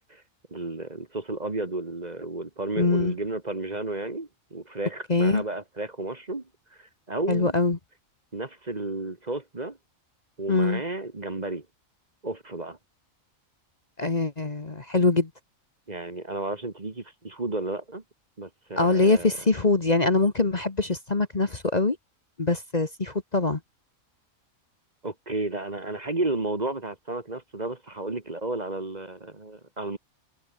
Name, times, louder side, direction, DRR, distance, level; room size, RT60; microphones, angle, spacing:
voice 1, 0.5-7.5 8.3-9.8 10.4-11.7 12.2-12.8 15.9-18.0 18.4-19.3 25.0-30.0, right 2 dB, 30° right, 1.9 m, -32 dB
voice 2, 2.8-3.1 5.1-5.4 7.3-7.8 10.5-10.8 14.0-15.3 18.8-22.0 22.4-23.6, left 3 dB, 30° left, 1.5 m, -23 dB
omnidirectional pair, 1.4 m